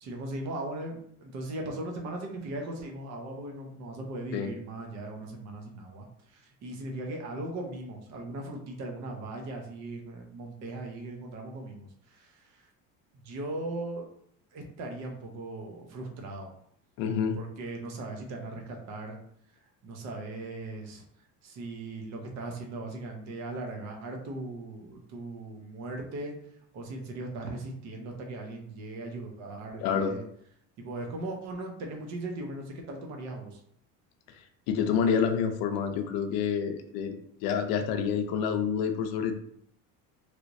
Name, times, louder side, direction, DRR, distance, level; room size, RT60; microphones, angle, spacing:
voice 1, 0.0-12.7 13.2-14.1 14.5-16.5 17.3-19.2 19.8-21.0 21.4-26.3 26.7-30.2 30.8-33.6, right 2 dB, 50° right, 1 dB, 0.8 m, -38 dB
voice 2, 17.0-17.4 29.8-30.2 34.7-39.4, left 7 dB, 80° left, 5 dB, 0.6 m, -28 dB
3.2 x 3.0 x 2.6 m, 0.69 s
cardioid pair, 160°, 35 cm